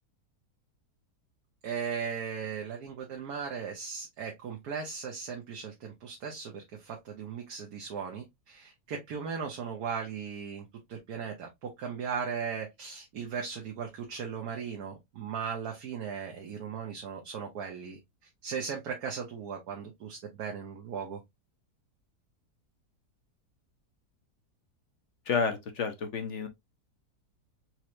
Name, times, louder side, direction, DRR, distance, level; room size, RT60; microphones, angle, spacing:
voice 1, 1.6-18.0 18.4-21.2, right 6 dB, 70° right, 1.4 m, -37 dB
voice 2, 25.3-26.5, left 5 dB, 55° left, 0.9 m, -30 dB
4.5 x 3.1 x 2.5 m
omnidirectional pair, 1.8 m